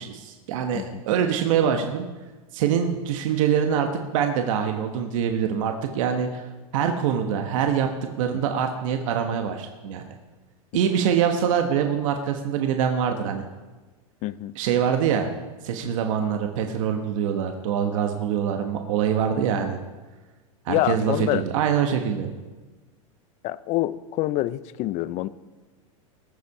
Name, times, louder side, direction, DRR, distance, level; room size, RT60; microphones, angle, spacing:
voice 1, 0.0-2.1 2.5-3.9 4.1-7.9 8.2-10.1 10.7-13.4 14.5-15.3 15.6-19.8 20.6-22.3, right 8 dB, 65° right, 5 dB, 1.2 m, -24 dB
voice 2, 14.2-14.5 20.7-21.4 23.4-25.3, left 16 dB, 40° left, 17 dB, 0.5 m, -26 dB
20.0 x 6.9 x 4.8 m, 1.3 s
hypercardioid pair, 125°, 18 cm